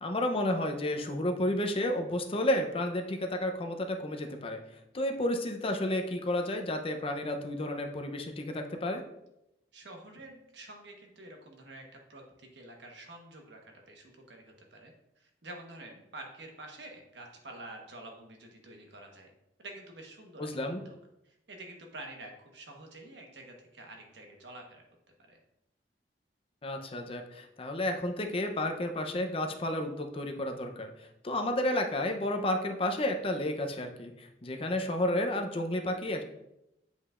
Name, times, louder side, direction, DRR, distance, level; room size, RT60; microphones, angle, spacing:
voice 1, 0.0-4.6 4.9-9.0 20.4-20.8 26.6-36.2, left 1 dB, 30° left, 4 dB, 0.6 m, -31 dB
voice 2, 9.7-19.3 19.6-21.0 21.2-24.8 25.2-25.4, right 2 dB, 75° right, 2 dB, 1.2 m, -48 dB
8.1 x 5.2 x 2.4 m, 0.86 s
head